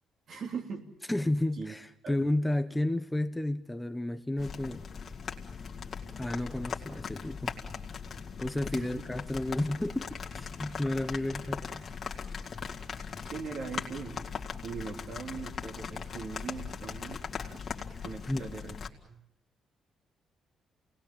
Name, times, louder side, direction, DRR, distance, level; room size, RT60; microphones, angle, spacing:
voice 1, 0.3-0.9 1.6-1.7 2.0-2.1 8.7-9.0 13.2-14.3 14.6-17.6 18.0-18.8 19.1-19.2, right 5 dB, 60° right, 3.4 m, -40 dB
voice 2, 1.1-4.8 6.2-7.5 8.4-12.3 18.3-18.5, left 1 dB, 10° left, 1.0 m, -32 dB
sound 1, 4.4-18.9, left 6 dB, 45° left, 2.4 m, -40 dB
28.5 x 19.0 x 7.2 m
cardioid pair, 90°, 0 cm